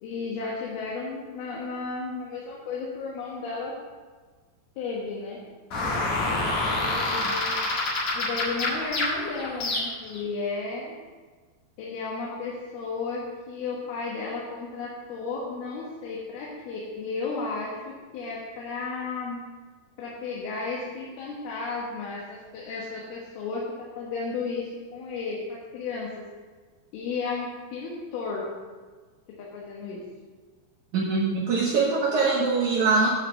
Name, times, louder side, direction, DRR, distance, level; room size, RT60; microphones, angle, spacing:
voice 1, 0.0-3.7 4.8-5.4 6.6-7.6 8.1-11.0 11.8-19.4 20.0-26.2 26.9-28.5 29.4-30.0, left 4 dB, 70° left, -4 dB, 3.1 m, -33 dB
sound 1, 5.7-10.2, left 2 dB, 50° left, 2.6 m, -27 dB
voice 2, 30.9-33.1, right 4 dB, 70° right, -4 dB, 1.8 m, -23 dB
9.5 x 5.0 x 7.2 m, 1.4 s
omnidirectional pair, 4.9 m